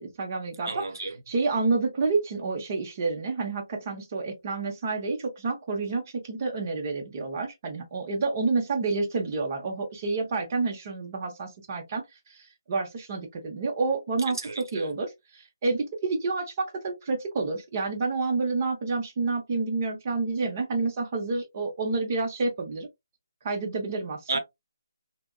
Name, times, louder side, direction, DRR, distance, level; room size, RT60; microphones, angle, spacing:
voice 1, 0.0-0.8 1.3-14.4 14.7-22.9 23.4-24.3, right 3 dB, 35° right, 0.8 m, -29 dB
voice 2, 0.6-1.2 14.3-14.9 24.3-24.4, right 3 dB, 70° right, 0.8 m, -32 dB
3.4 x 2.1 x 2.3 m
figure-of-eight pair, 155°, 2 cm